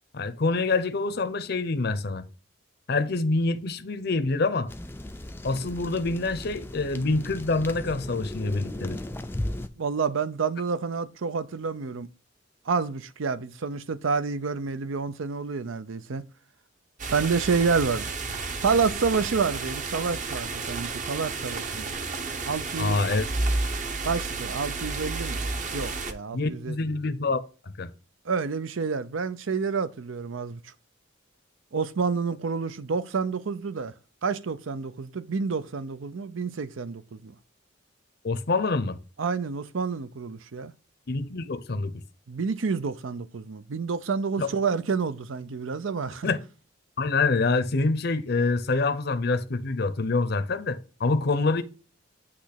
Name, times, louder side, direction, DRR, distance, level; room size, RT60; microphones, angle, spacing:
voice 1, 0.1-2.2 2.9-4.7 5.4-9.0 22.8-23.3 26.3-27.4 27.8-27.9 38.2-39.0 41.1-41.9 44.4-44.5 46.2-46.4 47.0-51.6, left 3 dB, 55° left, 0.7 m, -26 dB
sound 1, 4.7-9.7, left 1 dB, 10° left, 0.4 m, -36 dB
voice 2, 9.8-12.1 12.7-16.2 17.1-18.1 18.6-21.9 22.5-23.0 24.0-25.4 25.7-26.8 28.3-30.7 31.7-33.9 34.2-37.3 39.2-40.7 42.3-46.3, right 5 dB, 85° right, 0.6 m, -29 dB
sound 2, 17.0-26.1, right 3 dB, 40° right, 0.8 m, -31 dB
8.5 x 3.1 x 5.8 m
head